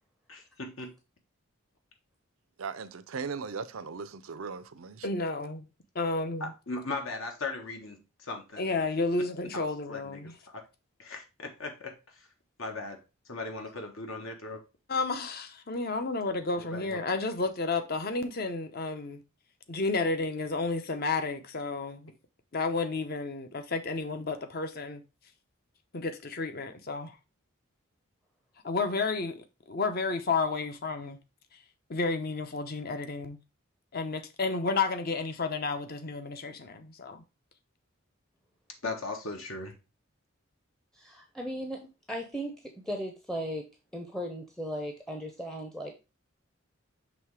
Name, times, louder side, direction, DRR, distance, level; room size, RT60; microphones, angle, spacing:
voice 1, 0.3-0.9 6.4-8.9 9.5-10.6 11.0-12.3 12.6-13.0 13.3-14.6 16.6-17.0 38.8-39.7, left 3 dB, 75° left, 1.4 m, -38 dB
voice 2, 2.6-5.1, right 5 dB, 80° right, 0.6 m, -38 dB
voice 3, 5.0-5.7 5.9-6.5 8.6-10.3 14.9-19.2 19.7-22.1 22.5-25.0 25.9-27.2 28.6-31.2 31.9-33.4 33.9-37.2, left 3 dB, 45° left, 0.7 m, -31 dB
voice 4, 40.9-41.8 42.1-43.6 43.9-45.9, equal, ahead, 0.6 m, -36 dB
6.2 x 3.3 x 4.7 m
head